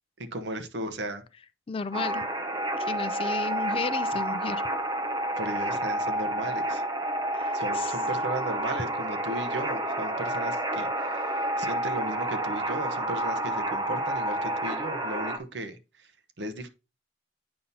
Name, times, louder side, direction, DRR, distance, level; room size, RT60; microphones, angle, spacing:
voice 1, 0.3-1.2 5.4-6.8 7.5-16.1 16.4-16.7, right 1 dB, 65° right, 0.8 m, -36 dB
voice 2, 1.7-2.2 2.9-4.6 7.3-7.9, left 4 dB, 30° left, 0.4 m, -33 dB
sound 1, 1.9-15.4, right 1 dB, 20° right, 0.7 m, -29 dB
8.7 x 5.5 x 2.7 m
head